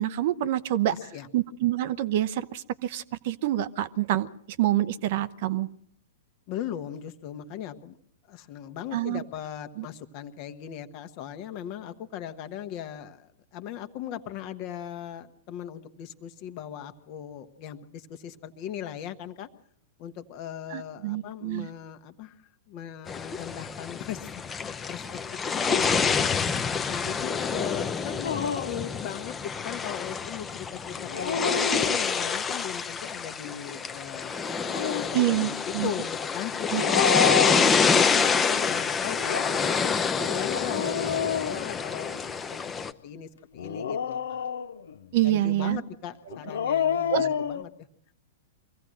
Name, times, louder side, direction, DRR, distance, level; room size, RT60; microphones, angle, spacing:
voice 1, 0.0-0.9 1.3-4.3 4.6-5.7 8.9-9.2 9.8-9.9 20.7-21.7 35.1-35.9 36.7-36.8 45.1-45.8 47.1-47.3, right 13 dB, 50° right, 15 dB, 0.8 m, -26 dB
voice 2, 0.9-1.3 6.5-8.0 8.3-19.5 20.0-22.3 22.7-26.3 26.9-28.3 28.7-34.5 34.8-42.7 43.0-43.3 43.5-44.5 45.2-47.9, left 10 dB, 40° left, 9 dB, 1.3 m, -38 dB
sound 1, 23.1-42.9, left 5 dB, 15° left, 0.9 m, -27 dB
Dog, 28.2-28.9 31.0-32.3 34.4-35.2 36.7-38.2 39.1-42.3 43.6-45.0 46.3-47.6, left 7 dB, 60° left, 1.0 m, -30 dB
24.0 x 16.0 x 7.6 m, 0.67 s
figure-of-eight pair, 100°, 0 cm